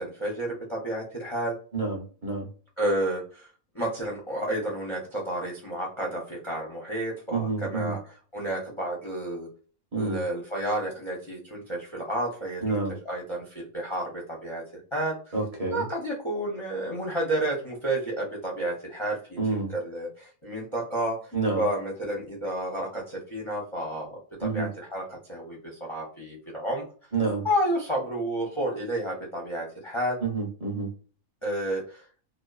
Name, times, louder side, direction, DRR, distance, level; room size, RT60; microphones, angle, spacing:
voice 1, 0.0-1.5 2.8-3.5 3.7-9.5 9.9-14.6 14.9-15.4 15.7-21.2 21.5-26.8 27.4-30.2 31.4-32.0, right 1 dB, 30° left, -3 dB, 0.5 m, -31 dB
voice 2, 1.7-2.5 7.3-7.9 9.9-10.2 12.6-12.9 15.3-15.8 19.4-19.7 21.3-21.6 24.4-24.7 27.1-27.5 30.2-30.9, right 3 dB, 35° right, -2 dB, 0.6 m, -28 dB
2.7 x 2.2 x 2.3 m, 0.39 s
omnidirectional pair, 1.6 m